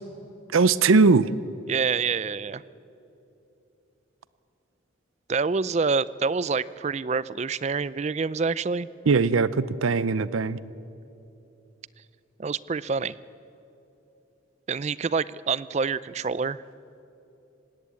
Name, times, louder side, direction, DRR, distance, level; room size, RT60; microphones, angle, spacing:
voice 1, 0.5-1.3 9.1-10.6, right 4 dB, 85° right, 17 dB, 0.6 m, -20 dB
voice 2, 1.7-2.6 5.3-8.9 12.4-13.1 14.7-16.6, right 5 dB, 35° right, 19 dB, 0.4 m, -27 dB
19.0 x 17.0 x 8.3 m, 2.9 s
head